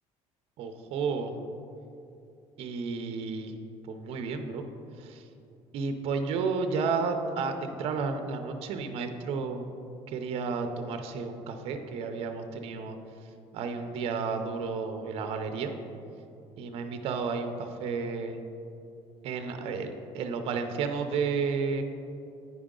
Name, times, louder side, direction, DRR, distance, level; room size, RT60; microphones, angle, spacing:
voice 1, 0.6-1.3 2.6-3.5 3.8-4.6 5.0-5.2 5.7-9.7 10.1-13.0 13.5-15.7 16.6-18.4 19.2-21.8, right 5 dB, 55° right, 6 dB, 0.6 m, -32 dB
9.6 x 5.0 x 3.7 m, 2.7 s
cardioid pair, 155°, 12 cm